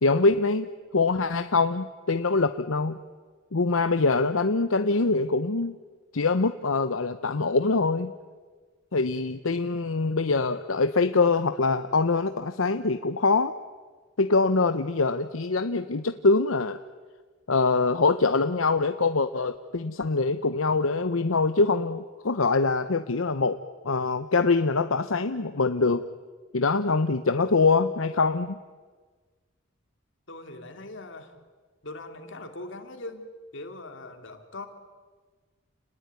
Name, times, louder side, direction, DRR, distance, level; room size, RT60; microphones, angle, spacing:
voice 1, 0.0-0.7 0.9-3.0 3.5-5.7 6.1-8.1 8.9-13.5 14.2-16.8 17.5-23.6 23.8-26.0 26.5-28.6, left 3 dB, 85° left, 10 dB, 0.9 m, -24 dB
voice 2, 30.3-31.4 31.8-34.7, left 2 dB, 65° left, 6 dB, 2.9 m, -41 dB
30.0 x 20.0 x 9.6 m, 1.4 s
head